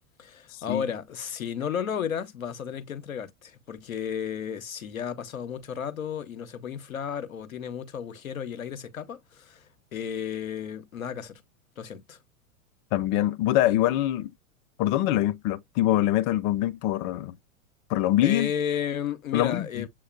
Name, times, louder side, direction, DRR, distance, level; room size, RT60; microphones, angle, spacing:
voice 1, 0.2-11.4 11.8-12.2 18.2-19.9, left 8 dB, 85° left, 0.9 m, -33 dB
voice 2, 12.9-14.3 14.8-17.4 17.9-18.5 19.3-19.9, left 14 dB, 40° left, 0.6 m, -24 dB
7.4 x 2.8 x 2.4 m
hypercardioid pair, 95°, 40 cm